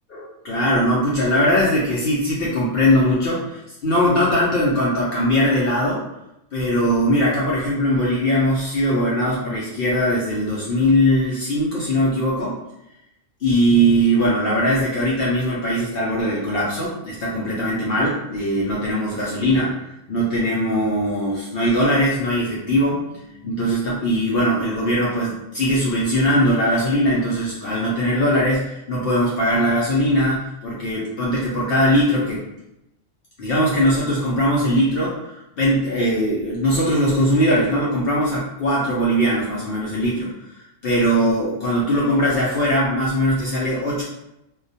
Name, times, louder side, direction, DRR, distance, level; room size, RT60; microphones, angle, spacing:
voice 1, 0.1-6.0 6.5-12.5 13.4-19.7 20.1-32.5 33.4-40.3 40.8-44.0, equal, 60° left, -6 dB, 0.7 m, -20 dB
2.3 x 2.1 x 2.6 m, 0.86 s
omnidirectional pair, 1.3 m